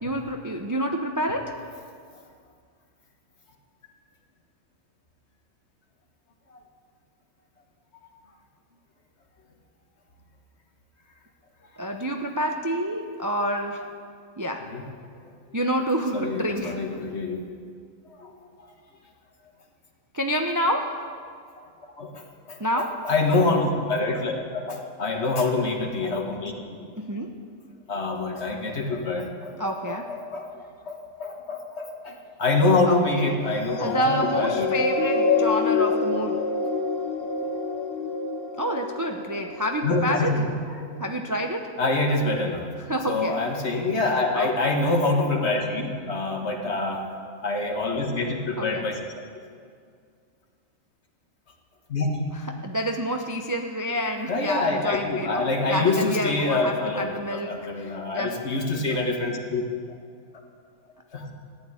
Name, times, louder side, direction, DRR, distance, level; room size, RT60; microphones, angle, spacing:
voice 1, 0.0-1.6 11.8-13.9 14.4-14.7 15.5-17.0 20.1-21.0 22.6-23.0 27.0-27.3 29.6-30.1 32.8-33.3 33.8-36.4 38.6-40.3 41.0-41.7 42.9-43.4 44.3-44.5 48.6-48.9 52.5-58.7, equal, 20° right, 3 dB, 0.6 m, -28 dB
voice 2, 16.1-17.4 18.1-18.3 22.0-26.8 27.9-34.7 39.8-40.5 40.8-40.9 41.8-42.6 43.1-47.0 47.4-49.1 51.9-52.2 54.3-59.6 61.1-61.3, left 3 dB, 50° left, 2 dB, 1.8 m, -26 dB
sound 1, 33.7-40.3 41.0-41.1, left 4 dB, 90° left, 1.4 m, -27 dB
14.5 x 9.0 x 9.6 m, 2.2 s
omnidirectional pair, 1.5 m